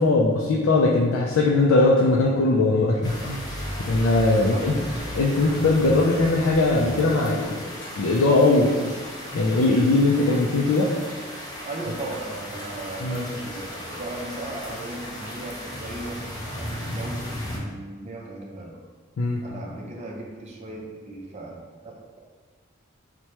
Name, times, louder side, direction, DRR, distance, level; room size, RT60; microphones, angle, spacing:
voice 1, 0.0-3.5 3.8-4.7 5.1-7.6 8.0-9.0 9.3-10.9 13.0-13.2 19.2-19.4, left 2 dB, 80° left, -2 dB, 0.4 m, -20 dB
sound 1, 3.0-17.6, equal, 20° left, 0.6 m, -35 dB
voice 2, 4.4-4.7 11.6-18.8 19.4-22.2, right 2 dB, 35° right, -1 dB, 0.5 m, -37 dB
4.5 x 2.2 x 2.8 m, 1.4 s
head